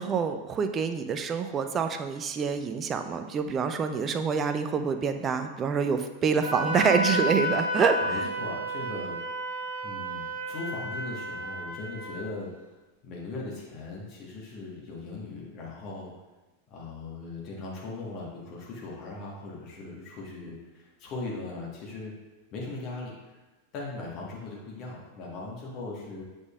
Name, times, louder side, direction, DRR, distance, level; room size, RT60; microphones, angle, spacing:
voice 1, 0.0-8.3, right 6 dB, 25° right, 7 dB, 0.4 m, -27 dB
Wind instrument woodwind instrument, 6.4-12.2, equal, 60° right, 1.0 m, -31 dB
voice 2, 8.0-9.2 9.8-12.5 13.0-16.1 16.7-22.1 22.5-23.3 23.7-26.2, left 3 dB, 40° left, -3 dB, 1.4 m, -39 dB
8.0 x 5.2 x 2.4 m, 1.1 s
figure-of-eight pair, 90°, 0 cm